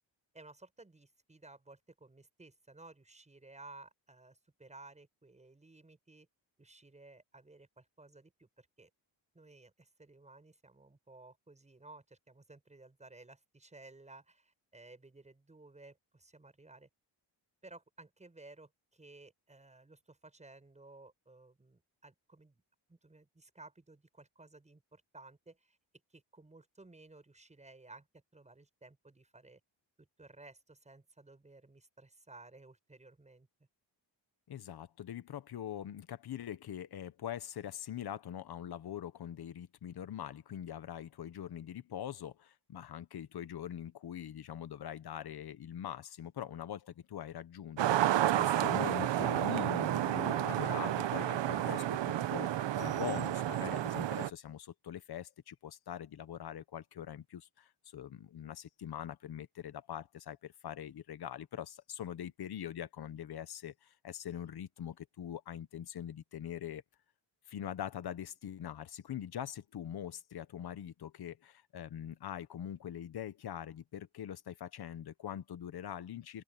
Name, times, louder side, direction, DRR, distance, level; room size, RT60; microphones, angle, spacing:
voice 1, 0.3-6.3 6.6-8.9 9.3-16.9 17.6-22.6 22.9-25.8 26.1-29.6 30.0-33.5, right 2 dB, 15° right, 6.9 m, -56 dB
voice 2, 34.5-66.8 67.5-76.4, left 10 dB, 55° left, 1.2 m, -43 dB
sound 1, 47.8-54.3, right 12 dB, 65° right, 1.0 m, -31 dB
open air
wide cardioid pair, 175°, 46 cm